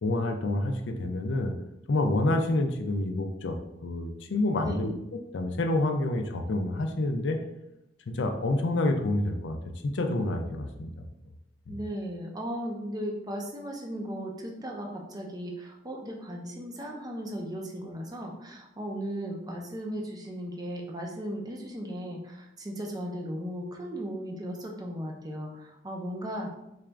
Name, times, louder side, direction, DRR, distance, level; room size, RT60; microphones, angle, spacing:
voice 1, 0.0-1.5 1.9-3.6 3.8-4.9 5.3-7.4 8.1-9.6 9.8-11.1 11.7-11.8, left 2 dB, 80° left, 4 dB, 0.4 m, -28 dB
voice 2, 4.6-4.9 11.7-26.5, equal, 20° right, 0 dB, 0.6 m, -36 dB
4.0 x 2.4 x 3.3 m, 0.87 s
head